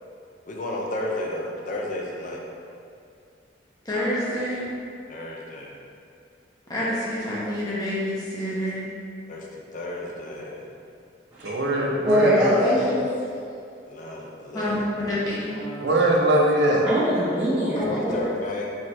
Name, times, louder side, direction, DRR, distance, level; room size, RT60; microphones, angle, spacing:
voice 1, 0.5-2.4 5.1-5.8 9.3-10.7 13.9-14.9 17.6-18.8, left 2 dB, 45° left, -1 dB, 0.6 m, -32 dB
voice 2, 3.8-4.7 6.7-8.8 14.5-14.8 15.0-15.5 17.8-18.1, left 1 dB, 20° left, -8 dB, 1.0 m, -28 dB
voice 3, 11.4-12.4 12.8-12.9 15.8-16.9, right 1 dB, 70° right, -2 dB, 0.7 m, -21 dB
voice 4, 12.0-13.1 15.5-16.0 16.8-18.0, equal, 20° right, -11 dB, 0.7 m, -23 dB
4.4 x 3.7 x 3.1 m, 2.4 s
head